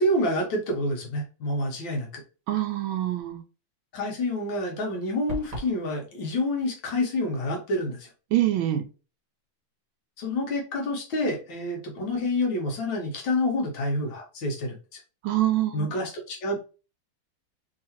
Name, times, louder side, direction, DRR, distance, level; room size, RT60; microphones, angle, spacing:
voice 1, 0.0-2.2 3.9-8.1 10.2-14.8 15.7-16.6, left 1 dB, 70° left, 1 dB, 1.6 m, -28 dB
voice 2, 2.5-3.4 8.3-8.8 15.2-15.9, right 13 dB, 80° right, 6 dB, 1.4 m, -25 dB
sound 1, 5.3-5.8, right 1 dB, 25° right, 0.9 m, -34 dB
3.7 x 2.8 x 2.8 m, 0.34 s
omnidirectional pair, 2.3 m